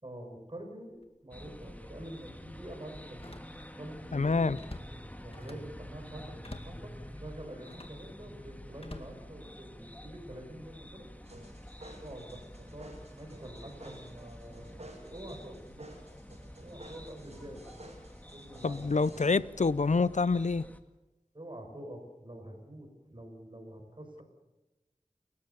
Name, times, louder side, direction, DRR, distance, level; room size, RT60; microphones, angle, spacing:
voice 1, 0.0-3.4 3.7-4.6 4.9-11.1 12.0-12.4 12.7-15.9 16.6-17.9 18.3-19.3 21.3-24.2, right 1 dB, 40° right, 3 dB, 6.5 m, -46 dB
Slam, 0.9-1.2 1.6-1.7 3.1-3.9 4.2-5.8 6.4-6.9 7.6-8.1 8.8-9.9 10.4-10.8, left 2 dB, 50° left, 2.2 m, -49 dB
sound 1, 1.3-20.8, equal, 10° left, 2.0 m, -48 dB
voice 2, 4.1-4.6 18.6-20.6, left 4 dB, 75° left, 18 dB, 0.6 m, -27 dB
sound 2, 11.2-19.2, right 1 dB, 60° right, 6.7 m, -52 dB
29.5 x 14.5 x 7.1 m, 1.0 s
wide cardioid pair, 45°, 12 cm